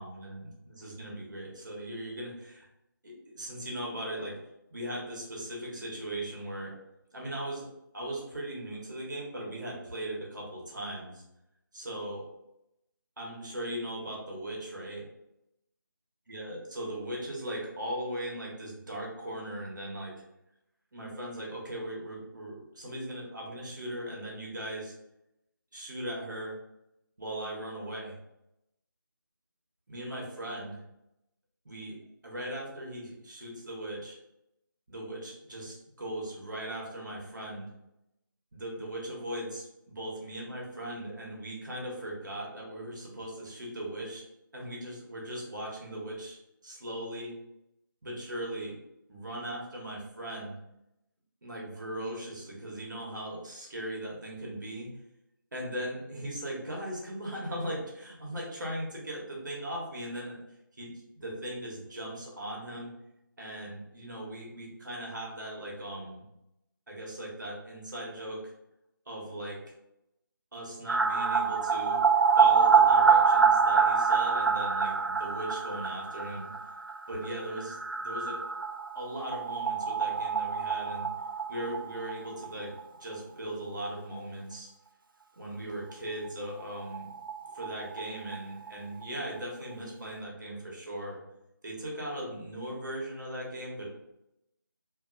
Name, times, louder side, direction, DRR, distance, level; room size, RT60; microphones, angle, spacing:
voice 1, 0.0-2.7 3.0-4.4 4.7-6.8 7.1-7.7 7.9-11.2 11.7-12.2 13.2-15.1 16.3-20.1 20.9-24.9 25.7-26.5 27.2-28.2 29.9-30.8 31.6-32.0 32.2-34.2 34.9-37.7 38.5-44.2 44.5-46.4 46.6-47.4 48.0-48.7 49.1-50.6 51.4-54.9 55.5-60.4 60.8-62.9 63.4-66.2 66.9-68.4 69.1-69.6 70.5-72.0 72.3-76.5 77.1-78.4 78.9-81.1 81.5-82.7 83.0-84.7 85.4-87.1 87.5-91.2 91.6-93.9, right 1 dB, 60° right, -3 dB, 1.1 m, -38 dB
sound 1, 70.9-82.5 82.8-82.9 83.1-83.2 86.2-86.3 86.6-86.7 86.9-88.7 89.0-89.1, right 5 dB, 75° right, 0.4 m, -26 dB
2.8 x 2.6 x 2.5 m, 0.85 s
figure-of-eight pair, 165°, 11 cm